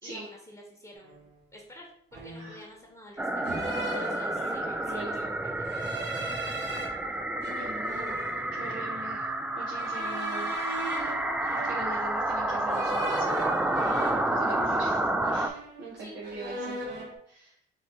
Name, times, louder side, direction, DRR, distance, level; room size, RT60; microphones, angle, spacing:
voice 1, 0.0-3.3 3.9-6.3 6.6-7.2 10.2-10.6 16.0-16.7, equal, 15° left, -1 dB, 1.1 m, -50 dB
sound 1, 1.0-1.3 2.1-2.7 3.4-4.8 5.6-6.9 7.4-9.0 9.8-12.1 12.7-15.0 15.2-15.9 16.2-17.2, right 1 dB, 55° right, 1.8 m, -39 dB
sound 2, 3.2-15.5, right 1 dB, 5° right, 0.3 m, -30 dB
voice 2, 4.8-5.3 7.4-8.1 8.5-10.6 11.5-13.3 13.7-15.0 15.3-16.8 17.3-17.5, right 3 dB, 80° right, -4 dB, 1.1 m, -42 dB
Wind instrument woodwind instrument, 8.6-14.7, right 4 dB, 35° right, 0.9 m, -52 dB
3.9 x 3.1 x 4.3 m, 0.68 s
cardioid pair, 90°, 20 cm